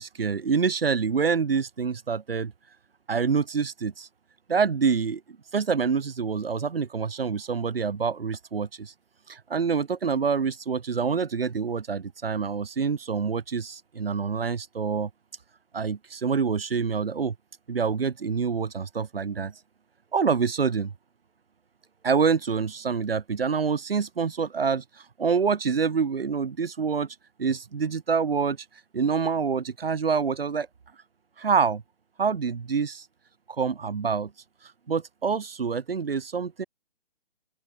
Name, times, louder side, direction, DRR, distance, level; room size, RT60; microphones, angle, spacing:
voice 1, 0.0-2.5 3.1-4.1 4.5-5.2 5.5-8.9 9.3-15.1 15.7-17.3 17.7-19.5 20.1-20.9 22.0-28.6 28.9-30.7 31.4-31.8 32.2-33.0 33.5-34.3 34.9-36.6, right 5 dB, 60° right, 4.0 m, -26 dB
open air
hypercardioid pair, 165°, 33 cm